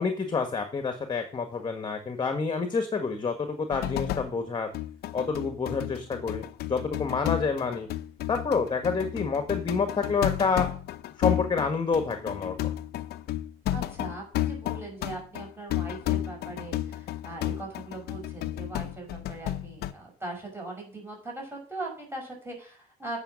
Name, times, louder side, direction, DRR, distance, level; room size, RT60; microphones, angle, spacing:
voice 1, 0.0-4.7 5.1-7.9 8.3-10.7 11.2-12.7, left 5 dB, 25° left, 7 dB, 1.6 m, -28 dB
sound 1, 3.7-4.4 4.7-19.9, left 13 dB, 70° left, 0.8 m, -32 dB
voice 2, 13.7-23.2, right 2 dB, 15° right, -1 dB, 5.6 m, -40 dB
9.0 x 6.1 x 7.4 m, 0.42 s
cardioid pair, 110°, 17 cm